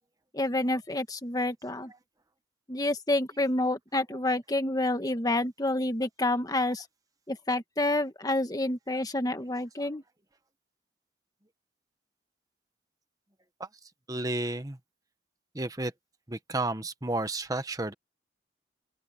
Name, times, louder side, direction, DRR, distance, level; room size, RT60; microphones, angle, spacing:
voice 1, 0.3-1.9 2.7-6.8 7.3-10.0, left 1 dB, 20° left, 1.5 m, -28 dB
voice 2, 14.1-14.8 15.5-15.9 16.3-17.9, right 2 dB, 20° right, 1.3 m, -31 dB
open air
head